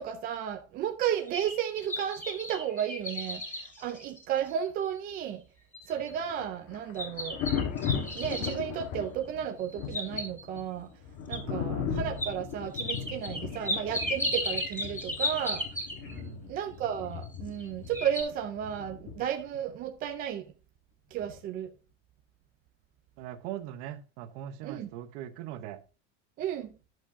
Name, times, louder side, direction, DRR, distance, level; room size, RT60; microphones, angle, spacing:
voice 1, 0.0-3.4 3.8-5.4 5.9-7.4 8.1-10.9 11.3-15.6 16.5-20.5 21.1-21.7 24.6-24.9 26.4-26.7, right 9 dB, 25° right, 0.4 m, -33 dB
sound 1, 1.1-4.6 5.1-5.2 5.7-6.1 7.0-8.6 9.6-10.6 11.3-11.4 12.2-12.3 12.7-16.2 17.2-17.7 17.9-18.2, left 1 dB, 5° left, 2.7 m, -35 dB
Thunder, 5.9-19.6 21.2-21.4, left 7 dB, 45° left, 1.5 m, -37 dB
voice 2, 11.4-12.0 16.0-16.5 23.2-25.8, right 11 dB, 50° right, 0.9 m, -41 dB
10.5 x 7.5 x 2.7 m
supercardioid pair, 165°, 35 cm